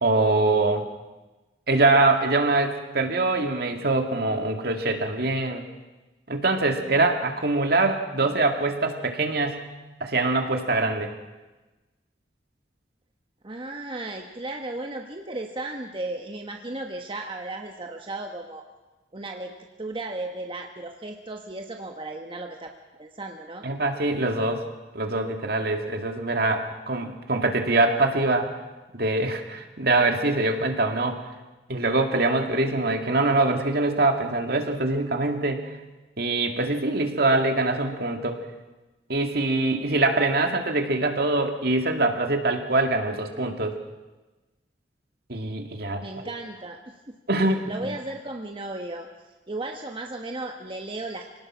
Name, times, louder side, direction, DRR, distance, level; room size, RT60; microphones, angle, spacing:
voice 1, 0.0-0.9 1.7-5.6 6.3-9.6 10.0-11.1 23.6-24.6 24.9-28.5 28.9-31.2 31.7-35.6 36.2-38.4 39.1-43.8 45.3-46.0 47.3-47.6, right 2 dB, 60° right, 4 dB, 2.1 m, -23 dB
voice 2, 13.4-18.6 19.1-19.5 19.8-22.7 23.0-23.7 46.0-47.2 47.7-49.1 49.5-51.4, right 2 dB, 30° right, 3 dB, 1.2 m, -35 dB
25.5 x 18.0 x 6.1 m, 1.2 s
head